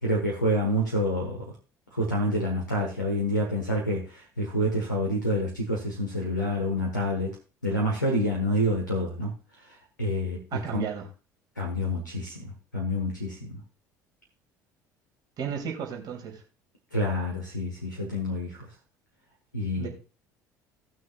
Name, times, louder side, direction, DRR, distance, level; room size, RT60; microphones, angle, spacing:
voice 1, 0.0-1.4 1.9-7.3 7.6-9.3 10.0-10.4 10.7-10.8 11.6-13.6 16.9-18.7 19.5-19.9, equal, 85° left, -1 dB, 1.4 m, -28 dB
voice 2, 10.5-11.1 15.4-16.4 19.8-19.9, right 7 dB, 45° right, 0 dB, 3.0 m, -33 dB
18.0 x 6.2 x 2.4 m, 0.32 s
figure-of-eight pair, 60°, 10 cm